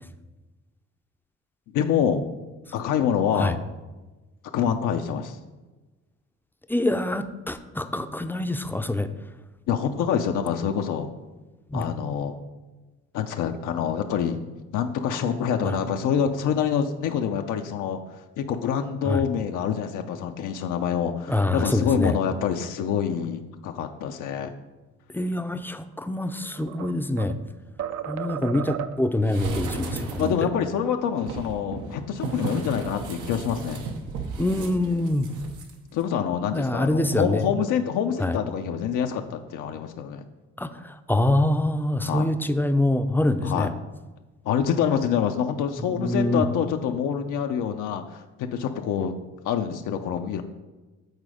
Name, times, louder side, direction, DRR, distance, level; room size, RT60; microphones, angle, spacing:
voice 1, 1.7-2.2 2.7-3.6 4.5-5.4 9.7-11.1 11.7-12.4 13.1-14.4 14.7-18.0 18.4-24.5 30.2-33.8 35.9-40.2 42.0-42.3 43.4-43.7 44.4-49.1 49.4-50.4, left 8 dB, 85° left, 5 dB, 0.6 m, -26 dB
voice 2, 6.7-9.1 11.7-11.9 15.6-15.8 19.0-19.2 21.3-22.2 25.1-27.3 28.1-30.3 32.2-32.3 34.4-35.3 36.5-37.5 38.2-38.4 40.6-43.7 45.9-46.4, left 1 dB, 5° left, 8 dB, 0.4 m, -25 dB
sound 1, 26.1-27.4 27.8-29.2, right 9 dB, 60° right, 0.5 m, -34 dB
sound 2, 29.3-30.5 31.2-35.7 36.0-36.1, right 3 dB, 90° right, 0.9 m, -34 dB
8.1 x 4.1 x 4.9 m, 1.2 s
cardioid pair, 90°, 30 cm